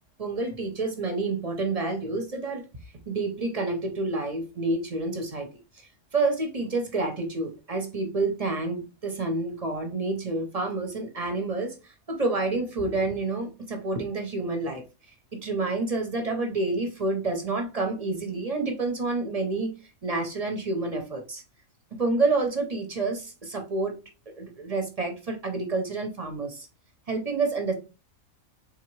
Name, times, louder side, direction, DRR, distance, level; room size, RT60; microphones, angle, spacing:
voice 1, 0.2-2.7 3.1-5.5 6.1-11.8 12.1-14.8 15.3-19.7 20.0-21.4 22.0-24.0 24.4-26.7 27.1-27.7, right 3 dB, 35° right, 4 dB, 0.7 m, -28 dB
3.9 x 3.5 x 3.1 m, 0.31 s
omnidirectional pair, 1.5 m